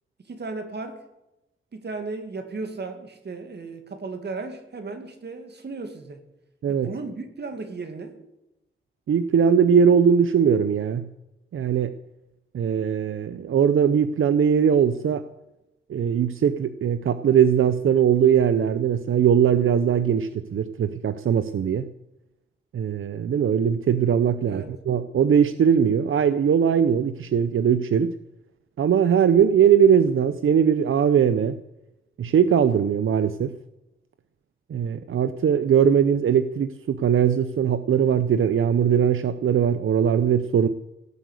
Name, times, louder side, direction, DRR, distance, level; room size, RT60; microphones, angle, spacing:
voice 1, 0.2-1.0 1.7-6.2 6.7-8.2 24.4-24.7, right 3 dB, 55° right, 7 dB, 2.2 m, -35 dB
voice 2, 9.1-11.1 11.5-11.9 12.5-15.2 15.9-21.9 22.7-28.1 28.8-31.6 32.2-33.5 34.7-40.7, right 8 dB, 85° right, 12 dB, 0.6 m, -20 dB
17.5 x 7.7 x 8.2 m, 0.91 s
wide cardioid pair, 130°, 21 cm